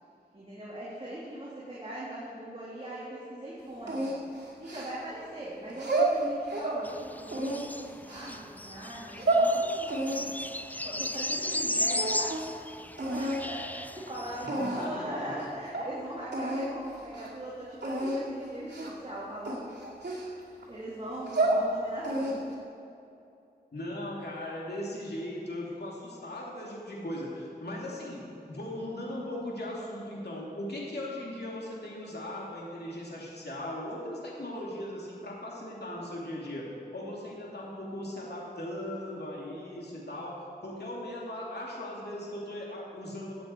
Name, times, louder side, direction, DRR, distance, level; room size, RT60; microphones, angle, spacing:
voice 1, 0.3-4.1 4.6-12.3 13.0-19.9 20.7-22.4, right 1 dB, 35° right, -7 dB, 2.8 m, -40 dB
sound 1, 3.9-5.2 5.7-6.8 7.3-8.4 8.9-9.5 9.9-11.6 11.9-12.5 13.0-13.4 14.1-14.2 14.5-15.0 15.4-15.5 15.7-15.9 16.3-16.7 17.0-17.3 17.8-18.2 18.7-19.0 19.4-20.6 21.1-21.6 22.0-22.5, right 2 dB, 90° right, 2.2 m, -30 dB
sound 2, 6.8-14.5, left 1 dB, 10° left, 0.4 m, -35 dB
voice 2, 14.6-15.3 23.7-36.7 36.9-43.4, left 1 dB, 70° left, -4 dB, 2.6 m, -38 dB
16.0 x 8.6 x 4.5 m, 2.7 s
wide cardioid pair, 45°, 17 cm